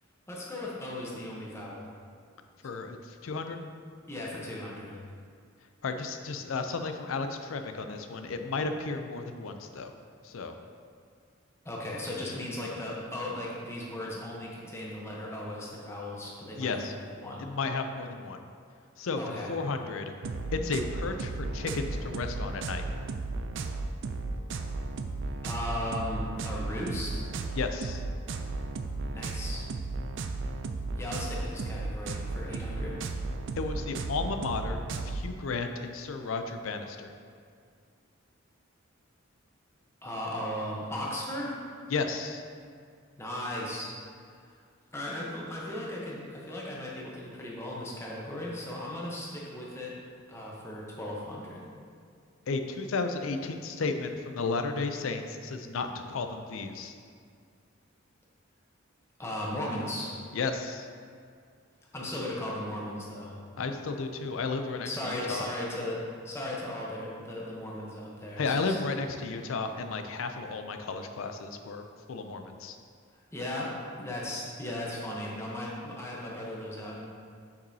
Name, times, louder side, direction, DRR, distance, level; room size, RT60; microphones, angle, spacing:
voice 1, 0.3-1.9 4.1-5.0 11.6-17.4 19.2-19.5 25.4-27.3 29.1-29.6 31.0-33.0 40.0-41.6 43.2-43.9 44.9-49.9 50.3-51.7 59.2-60.2 61.9-63.4 64.8-68.7 73.3-77.0, left 1 dB, 15° left, -4 dB, 0.9 m, -37 dB
voice 2, 2.6-3.7 5.8-9.9 10.2-10.6 16.6-16.9 17.4-18.4 19.0-20.1 20.5-22.8 27.5-28.0 33.6-37.1 41.9-42.4 52.5-56.9 60.3-60.9 63.6-65.5 68.4-72.8, left 4 dB, 80° left, 7 dB, 0.5 m, -33 dB
sound 1, 20.2-35.2, right 3 dB, 65° right, 0.4 m, -34 dB
6.9 x 5.3 x 2.7 m, 2.2 s
head